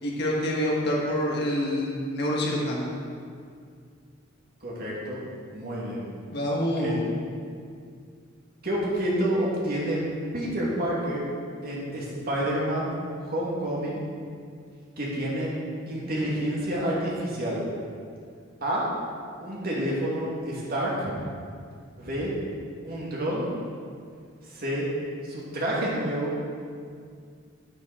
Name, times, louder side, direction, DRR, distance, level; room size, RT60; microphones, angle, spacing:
voice 1, 0.0-2.9 6.3-6.9, equal, 55° left, -2 dB, 1.4 m, -26 dB
voice 2, 4.6-5.2 5.5-6.1 6.8-7.0 8.6-10.0 10.3-11.2 11.6-12.9 13.2-14.0 15.0-15.5 15.9-17.6 18.6-18.9 19.4-21.1 22.0-22.3 22.8-23.4 24.5-24.9 25.2-26.3, right 1 dB, 50° right, -6 dB, 2.5 m, -28 dB
9.7 x 8.4 x 4.3 m, 2.2 s
head